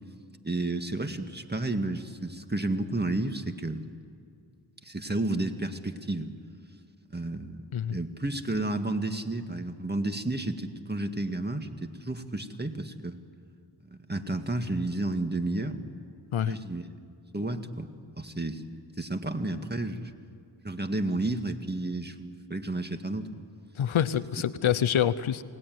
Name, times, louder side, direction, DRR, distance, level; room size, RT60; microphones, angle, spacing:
voice 1, 0.4-3.8 4.8-6.3 7.1-7.7 7.9-13.2 13.9-15.8 16.5-16.8 17.3-17.9 18.2-18.6 19.0-20.0 20.6-23.3, right 2 dB, 20° right, 7 dB, 2.0 m, -31 dB
voice 2, 23.8-25.4, left 9 dB, 80° left, 14 dB, 0.9 m, -26 dB
29.0 x 18.5 x 9.4 m, 2.4 s
cardioid pair, 55°, 48 cm